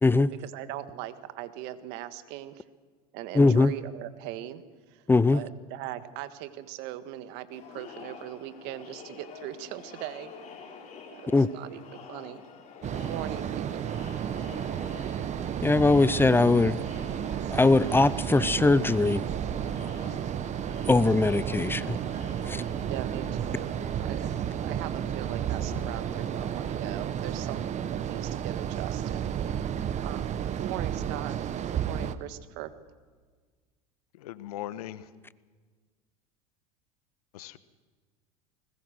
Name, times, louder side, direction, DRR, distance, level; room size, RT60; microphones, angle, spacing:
voice 1, 0.4-2.6 3.1-4.6 4.9-5.0 5.3-10.3 11.1-12.4 13.1-13.8 22.9-23.7 24.0-24.3 24.6-27.6 27.9-29.6 30.0-31.4 31.7-32.7, right 13 dB, 60° right, 11 dB, 1.5 m, -40 dB
voice 2, 3.3-3.7 5.1-5.4 11.3-11.5 15.6-16.8 17.5-19.3 20.9-22.0 22.5-22.6, left 3 dB, 10° left, 18 dB, 0.6 m, -21 dB
Crowd, 7.5-27.5, left 5 dB, 40° left, 5.7 m, -47 dB
sound 1, 12.8-32.1, right 9 dB, 35° right, 1.1 m, -32 dB
voice 3, 34.2-35.0 37.3-37.6, left 13 dB, 80° left, 14 dB, 1.1 m, -39 dB
20.5 x 20.0 x 6.5 m, 1.5 s
hypercardioid pair, 90°, 19 cm